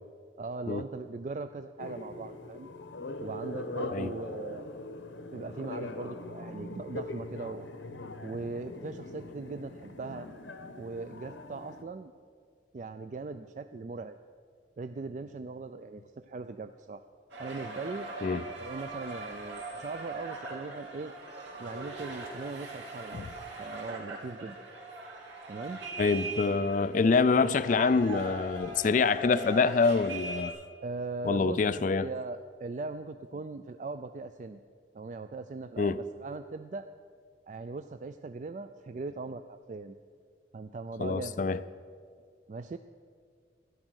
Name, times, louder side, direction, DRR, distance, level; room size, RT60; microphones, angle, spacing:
voice 1, 0.4-2.7 3.2-4.7 5.3-7.7 8.2-10.3 10.8-12.1 12.7-14.2 14.8-17.0 17.4-18.1 18.6-21.1 21.6-23.3 23.6-24.7 25.5-25.8 30.8-34.6 34.9-36.9 37.5-40.0 40.5-41.6 42.5-42.8, right 3 dB, 40° right, 0.3 m, -39 dB
sound 1, 1.8-11.8, left 2 dB, 80° left, 1.0 m, -41 dB
sound 2, 17.3-30.5, right 2 dB, 75° right, 3.2 m, -41 dB
voice 2, 26.0-30.5 31.2-32.1 35.8-36.0 41.0-41.6, left 4 dB, 45° left, 0.3 m, -26 dB
12.5 x 10.5 x 6.3 m
head